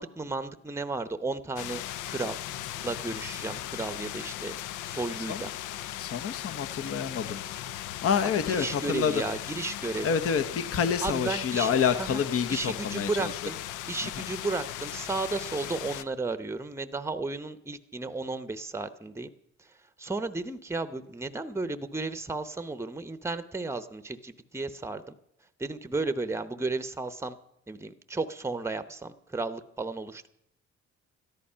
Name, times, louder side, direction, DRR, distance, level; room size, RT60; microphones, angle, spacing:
voice 1, 0.0-1.8 2.1-2.4 2.8-4.6 4.8-5.5 8.5-10.1 11.0-11.7 12.0-12.2 12.5-13.6 13.9-19.3 20.0-25.1 25.6-27.4 27.7-30.3, right 3 dB, 10° right, 12 dB, 0.8 m, -33 dB
sound 1, 1.6-16.0, left 13 dB, 85° left, 0.6 m, -38 dB
voice 2, 5.2-5.5 6.0-7.5 8.0-9.2 10.0-13.4 14.0-14.3, left 7 dB, 50° left, 9 dB, 0.9 m, -28 dB
13.5 x 11.5 x 5.6 m, 0.79 s
cardioid pair, 90°, 30 cm